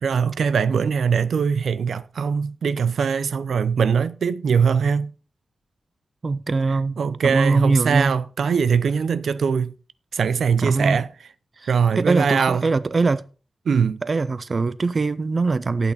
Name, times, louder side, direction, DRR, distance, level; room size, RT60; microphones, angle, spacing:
voice 1, 0.0-5.1 7.0-9.7 10.1-11.1 11.7-12.6 13.7-14.0, right 6 dB, 85° right, 0.6 m, -21 dB
voice 2, 6.2-7.0 7.2-8.2 10.6-11.0 11.6-13.2 14.0-15.9, right 3 dB, 35° right, 0.4 m, -22 dB
12.0 x 8.4 x 4.2 m
wide cardioid pair, 165°, 0 cm